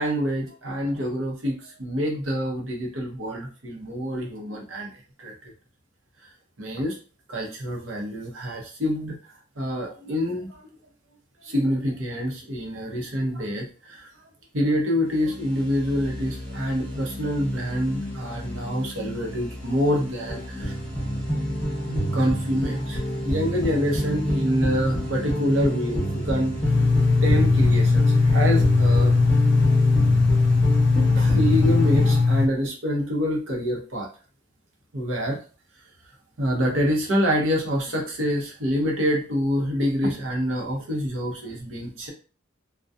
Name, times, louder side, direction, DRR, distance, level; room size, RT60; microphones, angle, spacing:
voice 1, 0.0-4.9 5.2-5.5 6.6-7.0 7.3-9.2 9.6-10.6 11.4-14.1 14.5-20.8 21.8-26.6 27.2-29.1 30.7-34.1 34.9-35.4 36.4-42.1, equal, 80° right, -1 dB, 0.8 m, -26 dB
sound 1, 15.1-32.2, equal, 10° left, 0.8 m, -29 dB
sound 2, 26.6-32.5, left 4 dB, 55° left, 0.3 m, -19 dB
2.6 x 2.2 x 2.3 m, 0.37 s
head